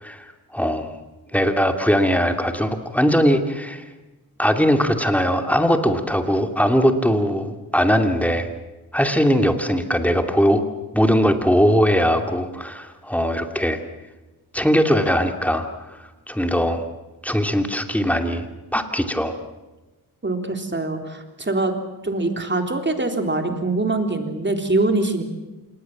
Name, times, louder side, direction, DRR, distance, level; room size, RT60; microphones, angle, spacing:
voice 1, 0.0-1.0 1.3-3.8 4.4-8.5 8.9-10.6 10.9-13.8 14.5-16.0 16.3-16.8 17.2-18.4 18.7-19.4, equal, 5° left, 6 dB, 2.7 m, -20 dB
voice 2, 20.2-21.7 22.0-25.2, right 2 dB, 30° right, 5 dB, 3.7 m, -23 dB
27.5 x 20.0 x 7.5 m, 1.1 s
cardioid pair, 70°, 38 cm